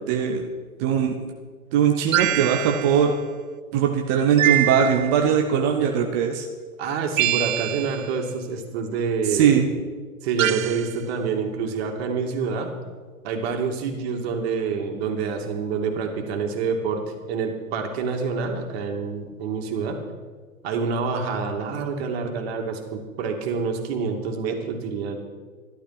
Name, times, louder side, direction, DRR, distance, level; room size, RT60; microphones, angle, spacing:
voice 1, 0.1-0.5 0.8-1.1 1.7-3.1 3.7-6.5 9.3-9.7, right 8 dB, 15° right, 2 dB, 0.4 m, -20 dB
sound 1, 2.1-3.1 4.4-5.3 7.2-8.1 10.4-10.9, right 13 dB, 65° right, 0.6 m, -24 dB
voice 2, 6.8-9.7 10.2-12.7 13.2-17.0 17.3-20.0 20.6-25.2, right 5 dB, 45° right, 3 dB, 2.4 m, -27 dB
14.0 x 11.5 x 5.9 m, 1.5 s
hypercardioid pair, 130°, 44 cm